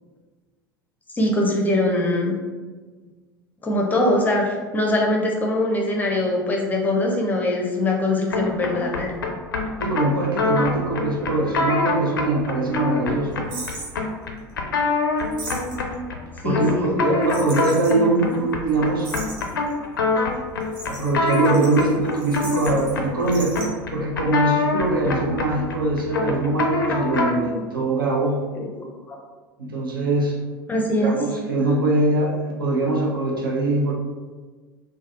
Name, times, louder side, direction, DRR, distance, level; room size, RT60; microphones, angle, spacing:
voice 1, 1.2-2.4 3.6-9.2 16.4-17.0 28.5-29.2 30.7-31.1, left 1 dB, 15° left, 0 dB, 0.5 m, -22 dB
sound 1, 8.3-27.5, left 3 dB, 75° left, 0.4 m, -26 dB
voice 2, 9.8-13.3 16.4-19.1 20.9-23.6 23.9-28.5 29.6-30.4 31.0-33.9, right 2 dB, 80° right, -2 dB, 0.5 m, -22 dB
sound 2, 13.5-13.9 15.2-15.9 17.3-17.9 18.3-18.4 18.7-18.8 19.0-19.7 20.6-22.9 23.2-23.6, right 2 dB, 45° right, 0.9 m, -37 dB
3.3 x 2.1 x 2.3 m, 1.4 s
figure-of-eight pair, 75°, 11 cm